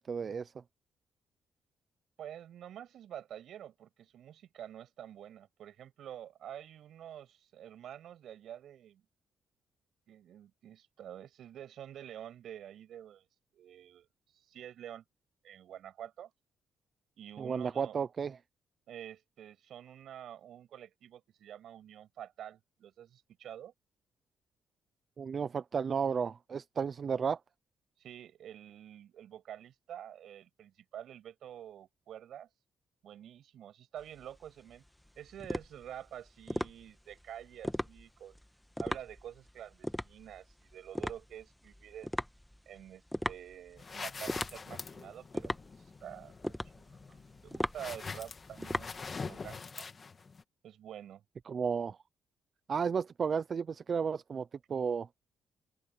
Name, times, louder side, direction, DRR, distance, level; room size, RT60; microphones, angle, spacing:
voice 1, 0.1-0.5 17.4-18.4 25.2-27.4 51.5-52.0 52.7-55.1, right 6 dB, 45° right, 0.6 m, -33 dB
voice 2, 2.2-9.0 10.1-13.3 13.5-14.1 14.3-15.0 15.4-16.3 17.2-18.0 18.9-23.7 28.0-32.5 33.0-34.8 35.2-38.4 38.8-42.2 42.7-45.5 46.0-46.3 46.7-49.9 50.6-51.2, right 10 dB, 70° right, 7.3 m, -48 dB
sound 1, 34.0-49.6, equal, 5° left, 1.4 m, -39 dB
sound 2, 43.8-50.4, left 5 dB, 35° left, 1.9 m, -44 dB
open air
cardioid pair, 90°, 0 cm